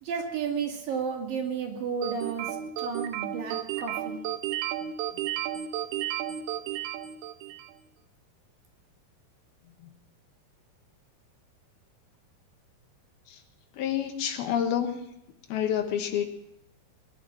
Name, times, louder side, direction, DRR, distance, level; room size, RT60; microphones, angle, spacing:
voice 1, 0.0-4.2, right 6 dB, 60° right, 2 dB, 4.0 m, -32 dB
sound 1, 2.0-7.8, right 12 dB, 80° right, 3.0 m, -33 dB
voice 2, 13.7-15.1 15.5-16.3, left 9 dB, 75° left, 6 dB, 3.1 m, -28 dB
21.5 x 11.0 x 6.1 m, 0.78 s
omnidirectional pair, 4.7 m